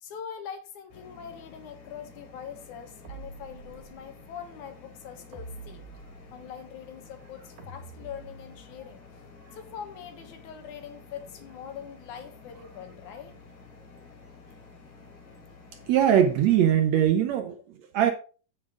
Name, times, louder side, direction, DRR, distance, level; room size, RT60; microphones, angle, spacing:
voice 1, 0.0-5.9 6.3-9.0 9.5-13.4, left 8 dB, 70° left, 6 dB, 2.7 m, -43 dB
sound 1, 0.9-16.8, left 4 dB, 85° left, 4.1 m, -51 dB
sound 2, 3.0-4.1 5.3-6.6 7.6-8.8, right 3 dB, 85° right, 3.7 m, -46 dB
voice 2, 15.9-18.1, right 10 dB, 70° right, 6 dB, 1.8 m, -22 dB
8.6 x 7.6 x 3.8 m, 0.37 s
omnidirectional pair, 3.7 m